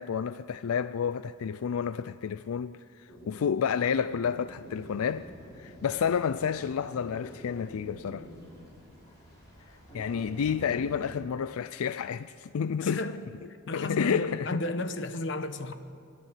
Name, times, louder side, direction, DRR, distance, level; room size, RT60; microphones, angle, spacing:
voice 1, 0.0-5.3 5.6-8.3 9.9-13.0 13.7-14.6, left 7 dB, 90° left, 0.4 m, -30 dB
sound 1, 3.1-11.2, equal, 15° left, 6.6 m, -47 dB
voice 2, 12.8-13.2 13.7-15.7, left 1 dB, 60° left, 1.1 m, -33 dB
26.0 x 11.0 x 10.0 m
head